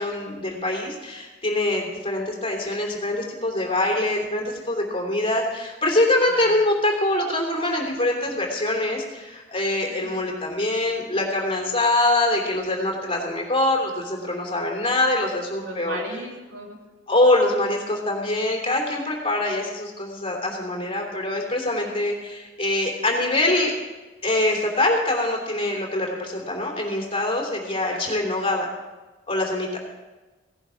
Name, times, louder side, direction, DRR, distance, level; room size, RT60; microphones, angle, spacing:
voice 1, 0.0-16.0 17.1-23.7 24.2-28.7 29.3-29.8, left 1 dB, 30° left, 0 dB, 3.0 m, -24 dB
voice 2, 9.8-10.1 15.6-16.8 27.9-28.0, right 1 dB, 85° right, 0 dB, 3.1 m, -36 dB
17.0 x 11.0 x 5.0 m, 1.2 s
head